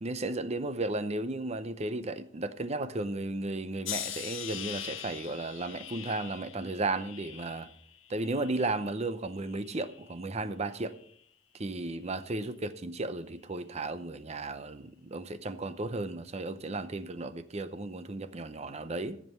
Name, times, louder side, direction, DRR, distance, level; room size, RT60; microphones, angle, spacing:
voice 1, 0.0-7.7 8.1-10.9 11.5-19.2, right 2 dB, 35° right, 0.7 m, -34 dB
sound 1, 3.8-9.0 9.4-10.1 10.9-11.2, left 12 dB, 80° left, 0.7 m, -42 dB
14.0 x 7.5 x 5.6 m
head